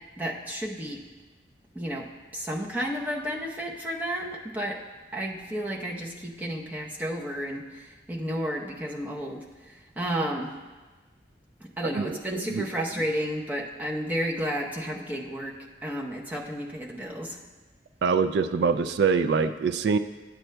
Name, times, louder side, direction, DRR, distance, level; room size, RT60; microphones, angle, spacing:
voice 1, 0.2-1.0 1.7-4.8 5.1-10.5 11.6-15.5 15.8-17.4, equal, 10° right, -3 dB, 0.8 m, -32 dB
voice 2, 11.8-12.6 18.0-20.0, right 5 dB, 65° right, 10 dB, 0.3 m, -25 dB
11.5 x 7.8 x 2.2 m, 1.3 s
head